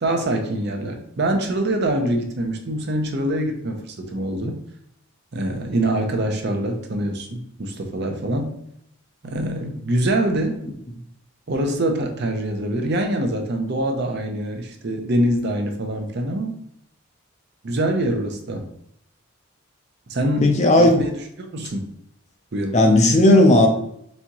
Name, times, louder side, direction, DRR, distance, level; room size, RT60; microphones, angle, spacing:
voice 1, 0.0-4.6 5.3-8.6 9.2-10.6 11.5-16.5 17.6-18.7 20.1-21.9 22.5-22.8, right 1 dB, 50° right, 4 dB, 0.6 m, -24 dB
voice 2, 20.4-21.0 22.7-23.7, left 1 dB, 30° left, 3 dB, 0.5 m, -14 dB
4.2 x 3.5 x 2.9 m, 0.72 s
head